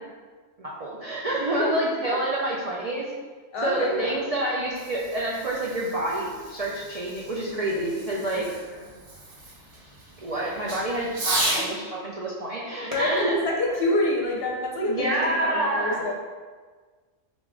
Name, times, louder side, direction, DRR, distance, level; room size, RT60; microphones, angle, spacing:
voice 1, 0.6-3.1 3.6-8.4 10.2-13.3 14.9-16.1, right 1 dB, 65° right, -4 dB, 0.3 m, -28 dB
voice 2, 3.5-4.2 7.4-7.6 8.3-8.4 11.7-11.8 12.9-13.2 13.4-16.1, left 2 dB, 55° left, -1 dB, 0.8 m, -27 dB
Fireworks, 4.5-11.7 12.9-14.5, right 1 dB, 35° right, 0.7 m, -35 dB
3.6 x 3.5 x 3.6 m, 1.4 s
omnidirectional pair, 1.4 m